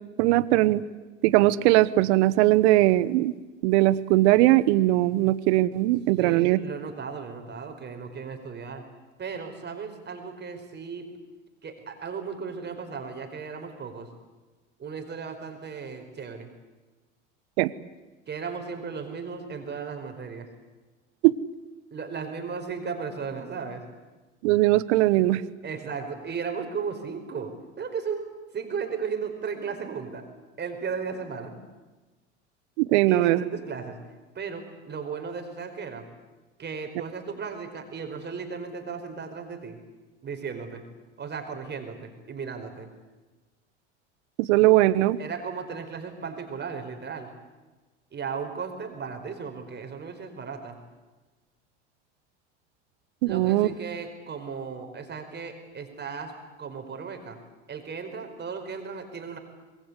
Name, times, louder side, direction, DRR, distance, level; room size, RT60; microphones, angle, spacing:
voice 1, 0.2-0.8 1.2-3.3 3.6-6.6 17.6-17.7 21.2-21.4 24.4-25.4 32.8-33.4 44.4-45.2 53.2-53.7, right 17 dB, 65° right, 17 dB, 1.2 m, -20 dB
voice 2, 6.2-8.8 9.2-11.1 11.6-14.1 14.8-16.5 18.3-20.5 21.9-23.9 25.6-30.2 30.6-31.6 33.1-34.0 34.3-36.1 36.6-39.8 40.2-40.8 41.2-42.9 45.2-47.3 48.1-50.8 53.2-57.4 57.7-59.4, right 5 dB, 30° right, 5 dB, 4.9 m, -35 dB
26.5 x 21.5 x 8.3 m, 1.2 s
hypercardioid pair, 85°, 36 cm